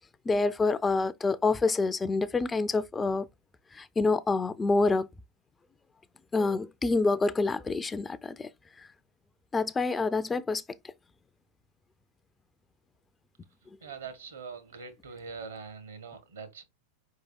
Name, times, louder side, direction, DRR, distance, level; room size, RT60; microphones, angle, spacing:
voice 1, 0.3-3.3 3.7-5.1 6.3-8.5 9.5-10.6, left 3 dB, 15° left, 0.3 m, -27 dB
voice 2, 13.8-16.6, right 5 dB, 70° right, 1.0 m, -43 dB
4.9 x 4.7 x 2.3 m
figure-of-eight pair, 90°, 0 cm